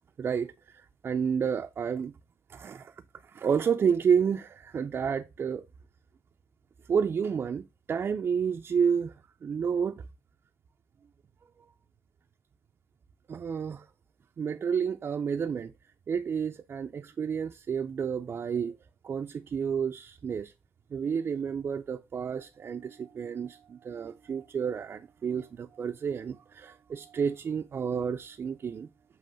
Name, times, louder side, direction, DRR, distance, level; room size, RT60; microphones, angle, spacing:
voice 1, 0.2-2.1 2.5-2.9 3.3-5.6 6.9-9.1 9.4-10.0 13.3-13.9 14.4-15.7 16.1-18.7 19.0-20.5 20.9-28.9, right 7 dB, 40° right, 0.5 m, -30 dB
7.6 x 3.0 x 5.1 m
cardioid pair, 105°, 6 cm